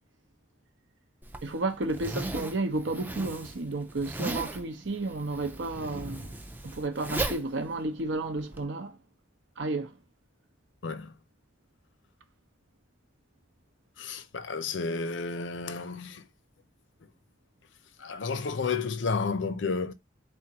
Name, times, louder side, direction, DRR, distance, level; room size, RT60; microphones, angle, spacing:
Zipper (clothing), 1.2-8.6, right 2 dB, 10° right, 0.3 m, -37 dB
voice 1, 1.4-6.4 6.6-9.0 9.6-9.9, right 2 dB, 80° right, 0.8 m, -32 dB
voice 2, 10.8-11.1 14.0-16.2 18.0-19.9, left 4 dB, 80° left, 0.6 m, -31 dB
3.6 x 3.5 x 2.9 m
head